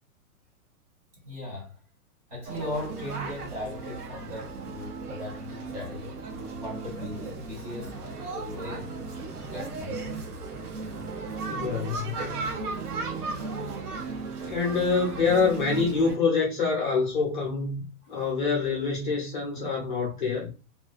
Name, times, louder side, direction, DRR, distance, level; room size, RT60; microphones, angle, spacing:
voice 1, 1.2-1.8 2.3-6.1 6.6-8.0 8.3-8.9 9.5-10.2 13.4-13.5, left 1 dB, 25° right, 1.0 m, -38 dB
sound 1, 2.5-16.2, right 4 dB, 90° right, 0.9 m, -36 dB
sound 2, 9.7-12.1 12.4-14.8, right 3 dB, 65° right, 0.6 m, -42 dB
voice 2, 11.5-12.1 14.4-20.5, left 4 dB, 35° left, 0.6 m, -26 dB
2.4 x 2.2 x 2.3 m
hypercardioid pair, 175°, 45 cm